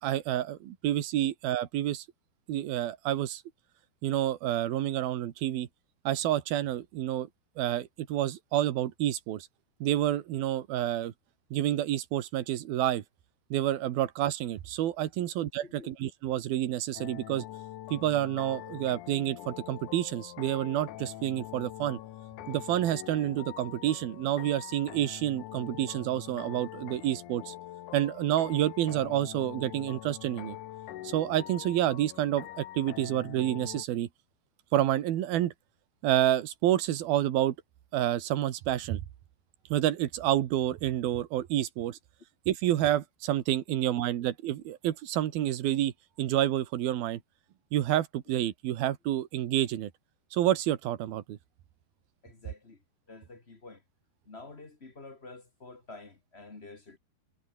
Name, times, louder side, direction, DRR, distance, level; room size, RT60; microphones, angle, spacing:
voice 1, 0.0-2.1 2.5-3.4 4.0-5.7 6.0-7.3 7.6-9.5 9.8-11.1 11.5-13.0 13.5-17.4 17.9-22.0 22.5-27.5 27.9-30.6 31.0-34.1 34.7-35.5 36.0-37.5 37.9-39.0 39.7-42.0 42.5-45.9 46.2-47.2 47.7-49.9 50.3-51.4, right 12 dB, 65° right, 3.2 m, -29 dB
sound 1, 16.9-33.8, left 13 dB, 65° left, 2.1 m, -44 dB
voice 2, 52.2-52.8 53.1-53.8 54.3-57.0, left 3 dB, 40° left, 0.9 m, -48 dB
omnidirectional pair, 4.9 m